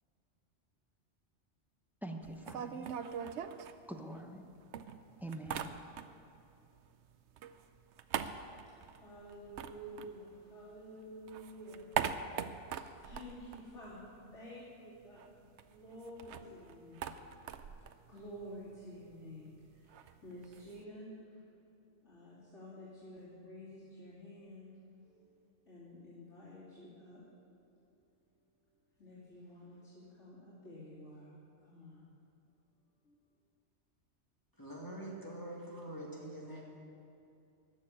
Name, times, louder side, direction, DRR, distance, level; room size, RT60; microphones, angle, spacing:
voice 1, 2.0-2.9 3.9-4.5 5.2-5.9, right 1 dB, ahead, 3 dB, 0.9 m, -45 dB
sound 1, 2.2-4.4 4.7-6.4 6.6-10.8 11.1-14.4 14.7-14.8 15.0-20.8, right 8 dB, 75° right, 0.9 m, -42 dB
voice 2, 8.8-11.9 12.5-17.7 18.1-21.4 22.0-27.2 27.5-27.6 27.9-28.1 28.6-28.7 29.0-32.0 33.0-33.2, equal, 80° left, -9 dB, 3.3 m, -51 dB
voice 3, 34.6-36.6, right 1 dB, 15° left, -4 dB, 2.0 m, -45 dB
14.5 x 6.5 x 9.9 m, 2.6 s
omnidirectional pair, 1.2 m